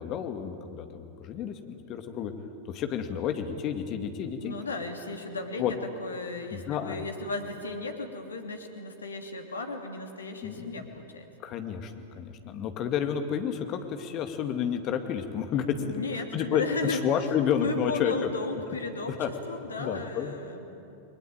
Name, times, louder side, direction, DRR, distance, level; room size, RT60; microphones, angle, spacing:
voice 1, 0.0-2.3 2.7-4.5 5.6-5.7 6.5-7.0 10.4-10.9 11.4-15.8 16.1-18.1 19.1-19.3 19.8-20.3, left 8 dB, 35° left, 6 dB, 2.2 m, -30 dB
voice 2, 4.4-11.3 15.8-17.0 17.6-19.1 19.5-21.0, left 3 dB, 75° left, 4 dB, 2.8 m, -35 dB
29.5 x 21.5 x 9.0 m, 2.8 s
figure-of-eight pair, 90°, 0 cm